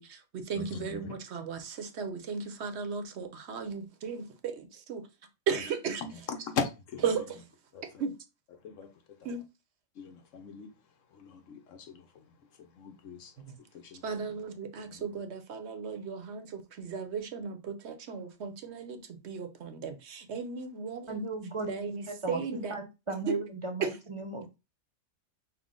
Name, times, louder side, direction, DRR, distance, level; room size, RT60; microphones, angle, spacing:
voice 1, 0.0-5.0 5.5-6.0 7.0-7.4 8.0-8.1 9.2-9.4 13.5-13.6 14.0-21.3 21.7-22.8 23.8-23.9, right 6 dB, 65° right, 0.9 m, -36 dB
voice 2, 0.5-1.1 6.0-7.0 7.7-7.8 8.6-8.9 10.0-10.7 11.1-12.0 12.8-13.3 13.8-14.0 14.9-15.0, left 5 dB, 75° left, 1.1 m, -38 dB
voice 3, 21.1-24.6, right 2 dB, 40° right, 0.4 m, -36 dB
5.9 x 2.1 x 3.7 m
omnidirectional pair, 1.3 m